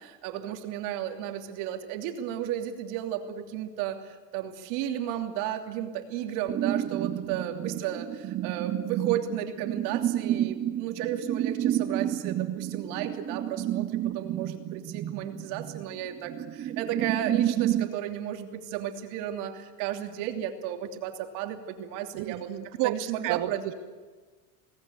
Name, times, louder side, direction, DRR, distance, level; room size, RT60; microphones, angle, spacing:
voice 1, 0.0-22.5 22.8-23.7, right 10 dB, 65° right, 4 dB, 3.0 m, -34 dB
sound 1, 6.5-17.9, right 12 dB, 25° right, 0.6 m, -30 dB
voice 2, 22.1-23.5, right 15 dB, 40° right, 14 dB, 1.1 m, -31 dB
24.0 x 18.5 x 9.6 m, 1.4 s
cardioid pair, 155°, 48 cm